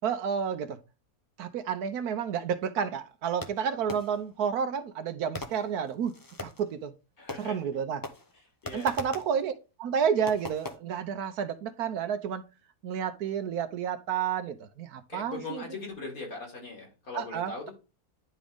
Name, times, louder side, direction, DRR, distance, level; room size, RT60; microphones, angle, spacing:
voice 1, 0.0-0.8 1.4-6.1 6.4-6.9 7.4-8.0 8.7-9.5 9.8-12.4 12.8-15.6 17.1-17.7, right 7 dB, 75° right, 1.2 m, -30 dB
Fireworks, 3.4-4.4 5.3-6.7 7.3-7.8 8.0-9.4 10.3-10.8, left 2 dB, 25° left, 0.4 m, -41 dB
voice 2, 7.2-7.6 8.6-8.9 15.1-17.7, left 3 dB, 65° left, 3.3 m, -40 dB
10.5 x 3.7 x 3.5 m
omnidirectional pair, 1.7 m